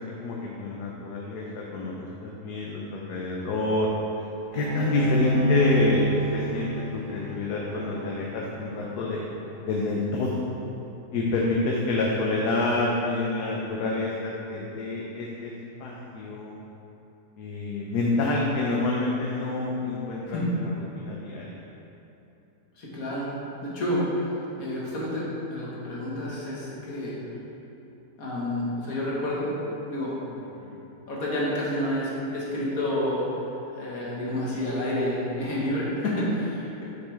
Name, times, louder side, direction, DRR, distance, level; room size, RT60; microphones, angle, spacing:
voice 1, 0.2-1.9 2.2-3.9 4.2-4.3 4.5-9.2 9.7-10.4 11.1-15.5 15.8-16.6 17.4-20.4 20.9-21.5 30.6-30.8, left 2 dB, 85° left, -3 dB, 1.3 m, -28 dB
Bowed string instrument, 4.5-9.8, right 1 dB, 55° right, 2.2 m, -29 dB
voice 2, 4.7-5.1 20.2-20.5 22.8-23.3 23.6-24.0 24.6-27.2 28.2-29.5 29.9-30.1 31.1-33.2 33.8-36.8, left 1 dB, 65° left, -6 dB, 1.9 m, -29 dB
8.1 x 6.6 x 3.4 m, 3.0 s
omnidirectional pair, 1.7 m